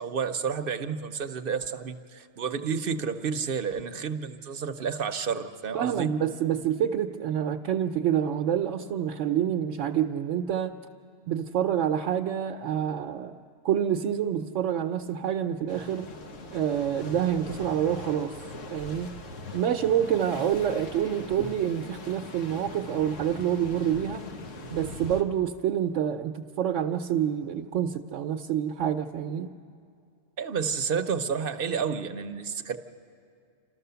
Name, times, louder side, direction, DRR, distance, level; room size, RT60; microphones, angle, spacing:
voice 1, 0.0-6.1 30.4-32.8, right 6 dB, 55° right, 8 dB, 0.8 m, -30 dB
voice 2, 5.7-10.7 11.3-13.4 13.6-16.1 16.5-18.3 18.7-19.1 19.5-24.2 24.7-29.5, right 9 dB, 80° right, 3 dB, 1.0 m, -27 dB
sound 1, 15.7-25.2, left 2 dB, 85° left, 1.5 m, -41 dB
29.0 x 13.5 x 6.8 m, 2.3 s
omnidirectional pair, 1.3 m